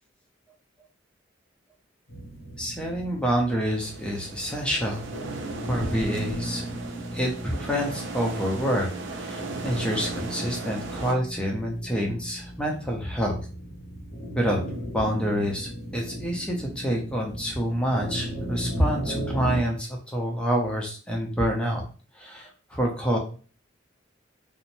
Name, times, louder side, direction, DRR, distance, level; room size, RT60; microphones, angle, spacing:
sound 1, 2.1-19.6, equal, 55° left, 0.7 m, -36 dB
voice 1, 2.6-5.1 5.7-6.6 7.1-13.4 14.3-21.8 22.2-23.2, equal, 5° left, -1 dB, 0.6 m, -27 dB
sound 2, 3.8-11.1, right 3 dB, 70° right, 0.5 m, -37 dB
3.0 x 2.0 x 2.6 m, 0.38 s
head